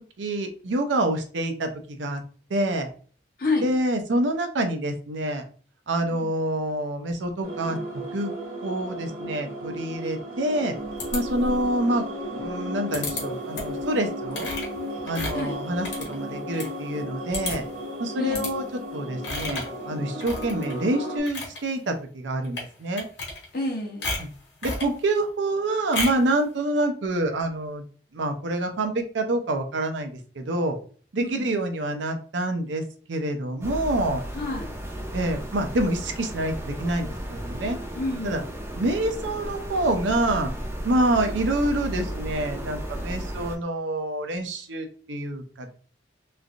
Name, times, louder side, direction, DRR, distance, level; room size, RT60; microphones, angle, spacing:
voice 1, 0.2-2.2 2.5-2.9 3.6-5.4 5.9-7.8 8.1-8.3 8.6-10.7 11.1-12.0 12.3-14.5 15.0-17.6 18.0-18.6 18.9-23.1 24.2-24.3 24.6-27.8 28.1-30.8 31.1-32.8 33.1-34.2 35.1-37.8 38.2-38.4 38.7-40.5 40.8-45.7, right 1 dB, 85° right, 6 dB, 0.6 m, -27 dB
sound 1, 7.4-21.2, equal, 45° right, 0.8 m, -34 dB
sound 2, 11.0-11.7 12.9-13.2 13.5-13.8 14.3-16.7 17.0-17.1 17.3-17.8 18.3-18.5 19.2-19.8 20.2-20.8 21.1-21.6 22.4-22.7 23.0-23.7 24.0-24.9 25.9-26.3, left 2 dB, 75° left, 1.2 m, -32 dB
voice 2, 18.2-18.5 23.5-24.2 31.2-31.5 34.3-34.7 37.9-38.6, left 2 dB, 50° left, 1 dB, 0.9 m, -29 dB
sound 3, 33.6-43.6, equal, 15° right, 0.5 m, -34 dB
3.2 x 2.5 x 2.4 m, 0.42 s
head